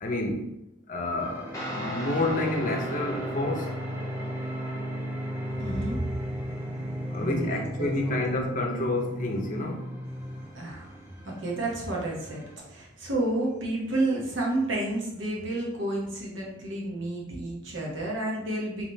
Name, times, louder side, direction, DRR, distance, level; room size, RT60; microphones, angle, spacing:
voice 1, 0.0-0.5 0.9-1.5 1.7-3.7 7.1-9.8, left 2 dB, 40° left, 2 dB, 0.7 m, -29 dB
sound 1, 1.2-12.6, equal, 10° right, 0.5 m, -42 dB
Guitar, 1.5-10.5, equal, 15° left, 1.1 m, -35 dB
voice 2, 5.6-6.0 7.2-8.2 10.5-11.0 11.2-18.9, right 2 dB, 70° right, -2 dB, 1.2 m, -31 dB
3.6 x 3.0 x 3.9 m, 0.84 s
head